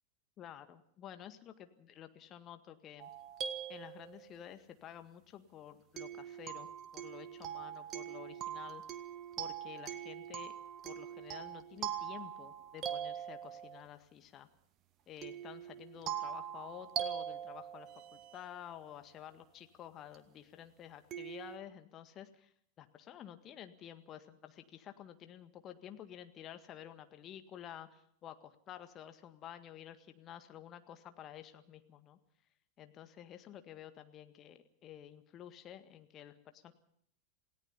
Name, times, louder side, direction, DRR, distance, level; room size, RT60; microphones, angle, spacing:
voice 1, 0.4-3.1 3.7-8.8 9.4-10.5 10.8-14.5 15.1-32.2 32.8-36.7, left 10 dB, 30° left, 8 dB, 1.8 m, -51 dB
sound 1, 3.0-4.5 6.0-13.9 15.2-18.6 20.1-20.2 21.1-21.6, right 9 dB, 35° right, 1.8 m, -42 dB
28.5 x 17.5 x 5.6 m, 0.66 s
figure-of-eight pair, 90°, 0 cm